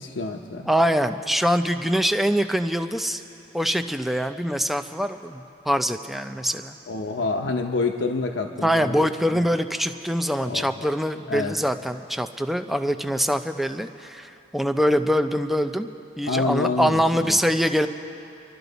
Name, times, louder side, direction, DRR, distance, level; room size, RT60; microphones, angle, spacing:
voice 1, 0.0-0.7 6.9-9.4 10.4-10.9 11.3-11.6 16.3-17.4, left 3 dB, 80° left, 2 dB, 0.8 m, -28 dB
voice 2, 0.7-3.2 3.5-6.8 8.6-15.9 16.2-17.9, equal, ahead, 8 dB, 0.4 m, -24 dB
28.5 x 12.0 x 4.0 m, 2.8 s
head